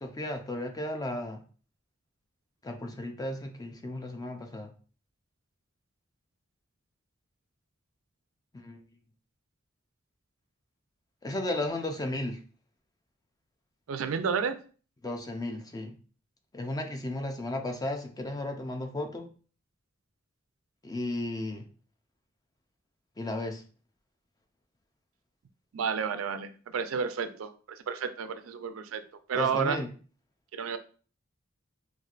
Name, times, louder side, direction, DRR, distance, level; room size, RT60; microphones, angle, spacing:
voice 1, 0.0-1.4 2.6-4.7 8.5-8.8 11.2-12.4 15.0-16.0 16.5-19.3 20.8-21.7 23.2-23.6 29.3-29.9, left 1 dB, 20° left, 5 dB, 0.4 m, -34 dB
voice 2, 13.9-14.6 25.7-27.5 27.9-29.0 29.3-29.8 30.5-30.8, right 6 dB, 90° right, 10 dB, 0.4 m, -31 dB
4.3 x 2.5 x 2.4 m, 0.40 s
head